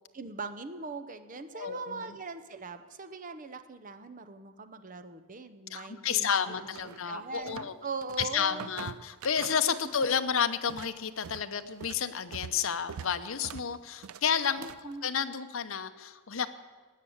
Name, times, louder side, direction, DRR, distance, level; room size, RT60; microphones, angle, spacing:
voice 1, 0.1-8.7 9.8-10.1 14.6-15.0, right 3 dB, 35° right, 9 dB, 0.7 m, -41 dB
voice 2, 1.5-2.1 5.7-7.7 8.2-14.7 15.0-16.5, left 7 dB, 65° left, 9 dB, 0.8 m, -31 dB
sound 1, 6.7-7.7 8.0-10.2 10.5-14.9, right 7 dB, 70° right, 0.4 m, -44 dB
18.5 x 6.7 x 8.7 m, 1.4 s
head